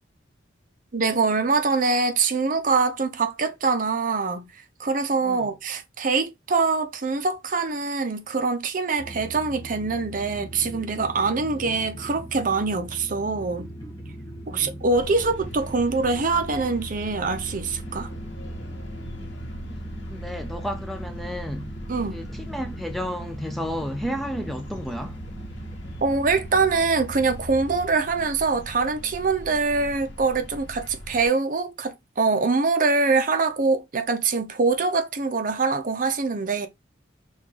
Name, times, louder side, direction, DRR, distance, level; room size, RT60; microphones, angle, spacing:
voice 1, 0.9-4.5 4.8-13.7 14.5-18.1 21.9-22.2 26.0-36.7, right 4 dB, 45° right, 0.6 m, -24 dB
sound 1, 9.0-27.9, right 1 dB, 15° left, 1.7 m, -39 dB
voice 2, 14.5-14.8 20.1-21.7 22.1-25.2, equal, ahead, 0.3 m, -32 dB
sound 2, 14.9-31.3, equal, 65° left, 0.9 m, -41 dB
5.5 x 2.3 x 3.1 m
head